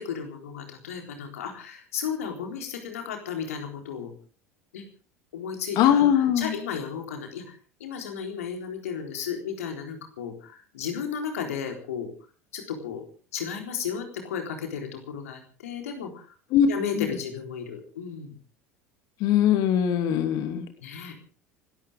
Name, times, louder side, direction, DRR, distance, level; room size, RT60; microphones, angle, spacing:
voice 1, 0.0-4.1 4.7-4.8 5.3-12.1 12.5-13.0 13.3-16.3 16.6-18.3 20.8-21.1, left 7 dB, 70° left, 3 dB, 4.0 m, -34 dB
voice 2, 5.8-6.5 16.5-16.7 17.0-17.1 19.2-20.6, left 10 dB, 50° left, 8 dB, 2.6 m, -21 dB
29.5 x 13.0 x 3.7 m, 0.37 s
figure-of-eight pair, 70°, 8 cm